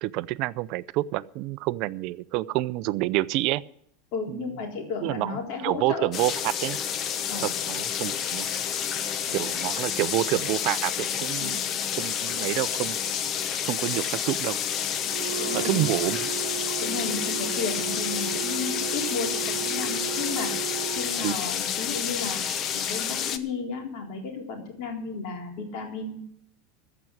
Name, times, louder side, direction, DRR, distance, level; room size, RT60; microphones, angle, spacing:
voice 1, 0.0-3.6 4.3-4.5 5.0-6.8 7.4-8.5 9.3-11.6 12.0-13.0 13.6-14.6 15.5-16.3 21.2-21.4, right 17 dB, 55° right, 17 dB, 0.4 m, -28 dB
voice 2, 4.1-6.1 7.3-7.5 9.2-9.5 11.4-11.6 15.1-15.9 16.8-20.7 21.0-22.5 22.7-26.2, left 4 dB, 55° left, 1 dB, 3.9 m, -34 dB
sound 1, 6.1-23.4, left 8 dB, 40° left, 0.9 m, -29 dB
Wind instrument woodwind instrument, 15.1-21.2, right 16 dB, 85° right, 1.1 m, -35 dB
14.5 x 6.0 x 9.2 m, 0.70 s
supercardioid pair, 125°, 0 cm